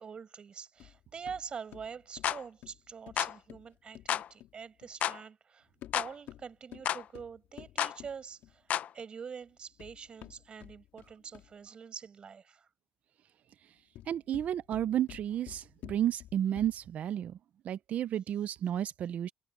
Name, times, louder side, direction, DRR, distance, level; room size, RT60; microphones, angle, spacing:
voice 1, 0.0-5.7 5.9-12.7, right 6 dB, 30° right, 6.0 m, -45 dB
sound 1, 0.8-5.0 5.7-8.7 9.5-11.7 13.7-17.0, left 13 dB, 75° left, 2.3 m, -52 dB
sound 2, 2.2-2.4 3.2-3.4 4.1-4.3 5.0-5.2 5.9-6.1 6.9-7.0 7.8-8.0 8.7-8.9, left 10 dB, 50° left, 0.8 m, -31 dB
voice 2, 14.1-17.4 17.6-19.3, right 10 dB, 50° right, 0.6 m, -32 dB
cardioid pair, 160°, 3 cm